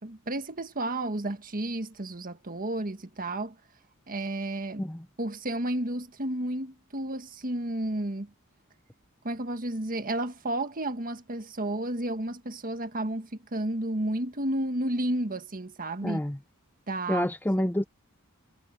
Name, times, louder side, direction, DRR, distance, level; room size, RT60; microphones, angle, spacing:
voice 1, 0.0-3.5 4.1-4.9 5.2-8.3 9.2-16.2 16.9-17.3 17.6-17.7, right 1 dB, 40° right, 1.6 m, -32 dB
voice 2, 16.0-16.4 17.1-17.8, left 1 dB, 10° left, 0.7 m, -27 dB
head